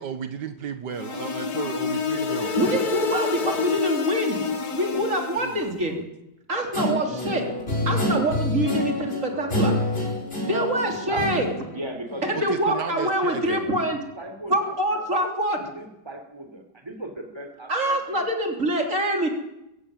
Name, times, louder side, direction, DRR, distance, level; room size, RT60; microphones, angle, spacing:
voice 1, 0.0-2.6 5.4-6.0 9.3-9.6 12.3-13.7, right 7 dB, 85° right, 9 dB, 1.9 m, -34 dB
sound 1, 0.9-5.7, left 5 dB, 65° left, 2.4 m, -28 dB
voice 2, 2.6-4.4 4.8-6.0 6.5-7.4 7.9-9.7 10.5-11.5 12.2-14.0 14.5-15.6 17.7-19.3, right 1 dB, 45° right, 3 dB, 3.9 m, -25 dB
Guitar, 6.7-12.5, left 1 dB, 35° left, 6.0 m, -27 dB
voice 3, 11.1-15.3 15.6-18.2, right 1 dB, 15° right, 5 dB, 3.7 m, -38 dB
22.0 x 15.5 x 9.2 m, 0.88 s
omnidirectional pair, 1.8 m